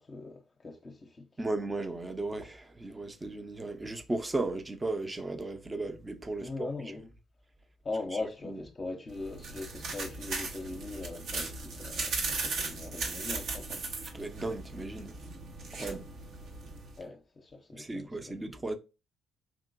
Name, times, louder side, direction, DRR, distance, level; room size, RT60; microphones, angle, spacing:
voice 1, 0.0-1.3 6.4-7.1 7.8-13.8 15.7-16.0 17.0-18.4, left 3 dB, 35° left, 0.7 m, -40 dB
voice 2, 1.4-6.7 8.1-8.6 14.1-15.2 15.7-16.1 17.7-18.8, right 2 dB, 20° right, 0.7 m, -36 dB
sound 1, 9.1-17.0, right 3 dB, 60° right, 1.0 m, -37 dB
4.6 x 2.9 x 2.5 m
hypercardioid pair, 50°, 0 cm